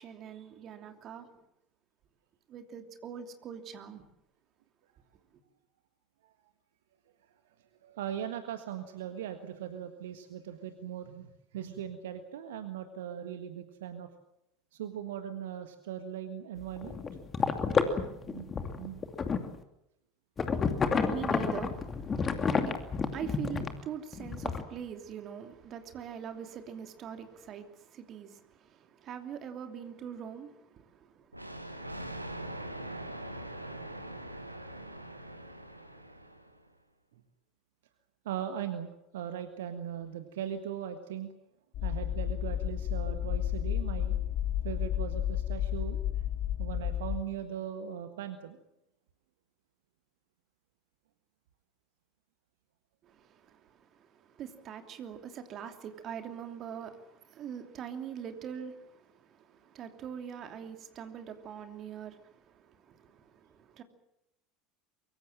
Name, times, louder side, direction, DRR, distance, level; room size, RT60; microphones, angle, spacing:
voice 1, 0.0-1.3 2.5-4.0 20.9-31.6 53.0-63.8, right 8 dB, 40° right, 2.9 m, -43 dB
voice 2, 7.8-14.1 14.7-17.0 18.2-19.1 38.2-41.3 41.8-44.3 44.6-46.2 46.6-48.6, right 9 dB, 65° right, 1.6 m, -39 dB
Water and bubbles pressuring through tube, 16.6-19.6 20.4-23.8 24.1-24.6, left 5 dB, 25° left, 2.6 m, -30 dB
Thunder, 31.3-36.7, right 1 dB, 90° right, 1.6 m, -42 dB
sound 1, 41.7-47.2, left 11 dB, 45° left, 1.7 m, -32 dB
24.0 x 23.5 x 7.5 m
figure-of-eight pair, 70°, 0 cm